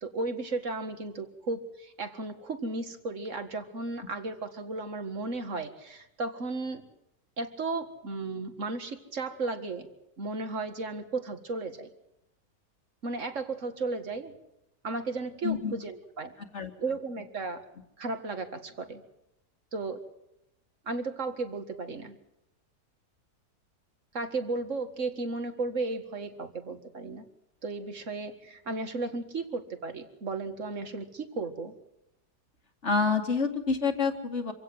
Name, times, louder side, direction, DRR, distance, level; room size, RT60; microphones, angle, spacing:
voice 1, 0.0-6.8 7.4-9.9 10.2-11.9 13.0-14.3 14.8-16.3 16.8-17.6 18.0-19.0 19.7-20.0 20.9-22.2 24.1-27.3 27.6-31.8, right 3 dB, 50° right, 8 dB, 2.2 m, -34 dB
voice 2, 15.4-15.7 16.5-16.7 32.8-34.5, left 4 dB, 45° left, 5 dB, 2.5 m, -27 dB
26.0 x 16.5 x 7.9 m, 0.87 s
omnidirectional pair, 1.7 m